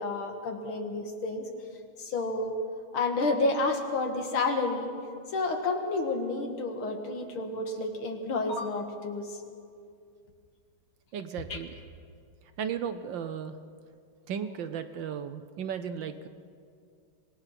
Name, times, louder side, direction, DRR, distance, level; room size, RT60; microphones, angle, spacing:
voice 1, 0.0-1.4 2.0-2.5 2.9-4.9 5.3-9.4 11.5-11.6, left 3 dB, 70° left, 4 dB, 2.7 m, -30 dB
voice 2, 11.1-11.8 12.6-13.6 14.3-16.3, right 7 dB, 65° right, 10 dB, 1.3 m, -35 dB
26.0 x 19.0 x 5.9 m, 2.3 s
omnidirectional pair, 2.4 m